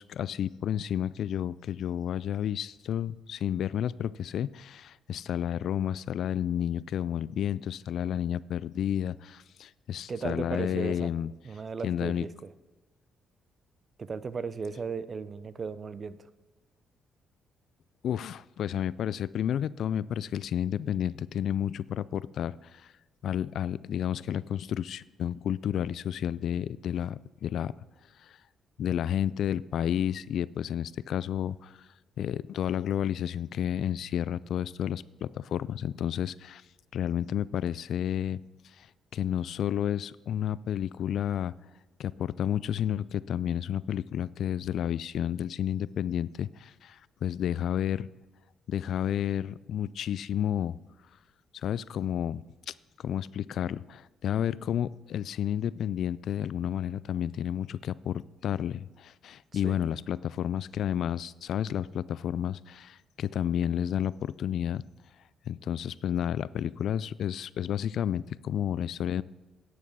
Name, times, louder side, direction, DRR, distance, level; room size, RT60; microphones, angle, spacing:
voice 1, 0.0-11.3 11.8-12.3 18.0-22.9 23.2-27.7 28.2-28.4 28.8-31.9 32.2-36.6 36.9-38.4 38.8-41.5 42.0-48.1 48.7-50.8 51.5-64.8 65.5-69.2, left 10 dB, 70° left, 20 dB, 0.3 m, -31 dB
voice 2, 10.1-11.1 11.4-12.3 14.0-16.2 59.5-59.8, right 5 dB, 40° right, 15 dB, 0.6 m, -36 dB
9.9 x 8.1 x 6.2 m, 1.2 s
cardioid pair, 90°, 0 cm